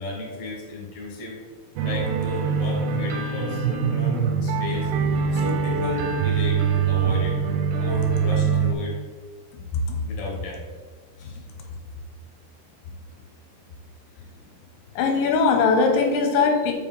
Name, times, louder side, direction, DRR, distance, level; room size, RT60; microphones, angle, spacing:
voice 1, 0.0-1.4 1.8-4.9 5.3-7.4 7.8-9.0 10.0-10.6 11.2-11.4, left 2 dB, 45° left, -3 dB, 1.9 m, -33 dB
sound 1, 1.8-8.7, right 6 dB, 80° right, 2.7 m, -23 dB
voice 2, 15.0-16.7, left 4 dB, 80° left, 3 dB, 2.9 m, -20 dB
7.1 x 5.3 x 4.0 m, 1.5 s
omnidirectional pair, 5.6 m